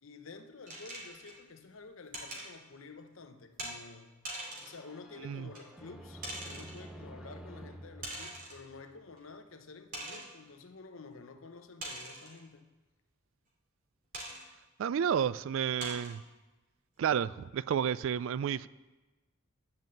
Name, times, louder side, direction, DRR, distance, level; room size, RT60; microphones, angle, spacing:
voice 1, 0.0-4.2 4.6-12.7, left 4 dB, 75° left, 0.9 m, -50 dB
sound 1, 0.7-1.4 2.1-2.5 3.6-3.8 4.2-4.8 5.5-5.6 6.2-6.8 8.0-8.6 9.2-9.3 9.9-10.3 11.8-12.4 14.1-14.4 15.1-15.2 15.8-16.2, right 1 dB, 45° right, 2.5 m, -42 dB
sound 2, 4.4-9.2, right 1 dB, 5° right, 0.6 m, -50 dB
voice 2, 14.8-16.2 17.0-18.7, right 8 dB, 70° right, 0.3 m, -31 dB
10.5 x 5.5 x 7.7 m
head